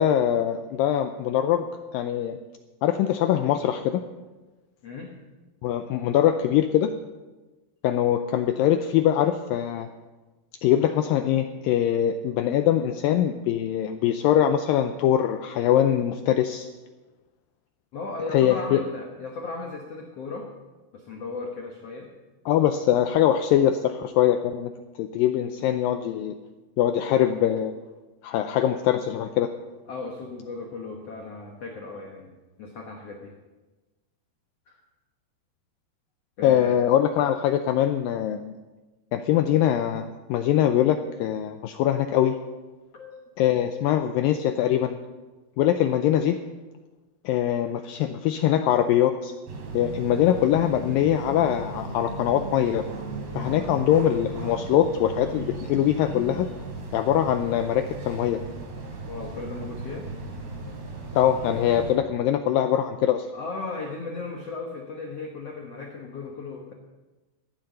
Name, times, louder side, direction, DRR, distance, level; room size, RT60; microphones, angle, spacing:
voice 1, 0.0-1.7 1.9-2.4 2.8-4.0 5.6-6.9 7.8-9.9 10.6-16.7 18.3-18.8 22.5-24.7 25.0-26.3 26.8-27.7 28.2-29.5 36.4-38.5 39.1-42.4 43.4-45.0 45.6-46.4 47.3-49.3 49.7-52.8 53.3-56.5 56.9-58.4 61.1-63.2, left 10 dB, 90° left, 8 dB, 2.0 m, -22 dB
voice 2, 4.8-5.1 17.9-20.5 20.9-22.1 29.9-33.3 34.7-34.8 36.4-36.8 42.9-43.3 59.1-60.1 63.3-66.7, left 3 dB, 70° left, 1 dB, 1.5 m, -36 dB
sound 1, 49.5-61.9, right 3 dB, 75° right, 4.7 m, -36 dB
15.5 x 10.5 x 5.4 m, 1.2 s
omnidirectional pair, 4.7 m